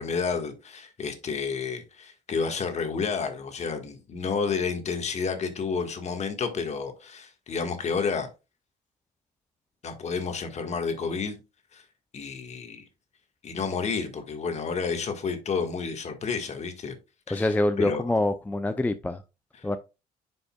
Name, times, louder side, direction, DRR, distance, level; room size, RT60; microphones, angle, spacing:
voice 1, 0.0-8.3 9.8-11.4 11.7-11.8 12.1-12.8 13.4-16.9 17.3-17.5 17.8-18.0 19.6-19.7, left 5 dB, 40° left, 1.6 m, -30 dB
voice 2, 17.3-19.2 19.6-19.8, left 1 dB, 10° left, 0.4 m, -25 dB
10.0 x 5.4 x 2.3 m
cardioid pair, 110°, 17 cm